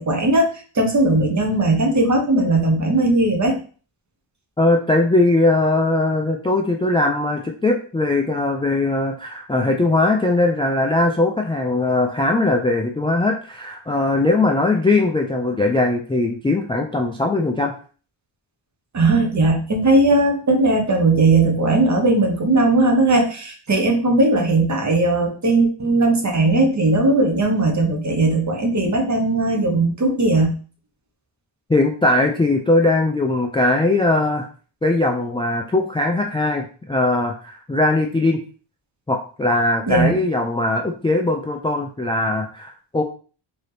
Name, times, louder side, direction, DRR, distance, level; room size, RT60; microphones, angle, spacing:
voice 1, 0.0-3.6 18.9-30.5 39.9-40.2, right 2 dB, 35° right, 3 dB, 0.9 m, -18 dB
voice 2, 4.6-17.7 31.7-34.5 34.8-38.4 39.1-43.0, left 2 dB, 10° left, 2 dB, 0.3 m, -20 dB
4.1 x 2.8 x 3.2 m, 0.40 s
wide cardioid pair, 120°, 47 cm